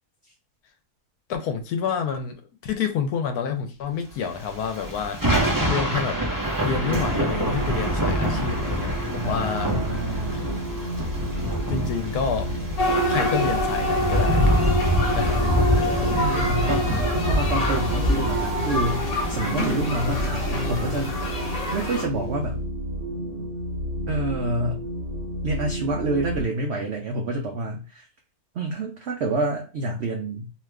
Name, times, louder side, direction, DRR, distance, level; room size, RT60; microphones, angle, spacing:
voice 1, 1.3-2.4 2.6-6.2 6.6-9.8 10.3-10.4 11.4-12.5 13.1-14.5 15.1-15.9, left 7 dB, 75° left, 1.0 m, -29 dB
Thunder / Rain, 4.3-21.8, equal, 30° right, 0.4 m, -26 dB
sound 1, 6.7-26.4, equal, 55° right, 0.8 m, -32 dB
voice 2, 9.2-10.5 16.1-16.9 17.2-19.0 19.3-21.4 21.7-22.6 24.1-24.8 25.4-28.1 28.5-30.5, right 2 dB, 90° right, 0.5 m, -28 dB
sound 2, 12.8-22.1, left 1 dB, 45° left, 0.4 m, -26 dB
2.8 x 2.4 x 3.3 m
omnidirectional pair, 1.8 m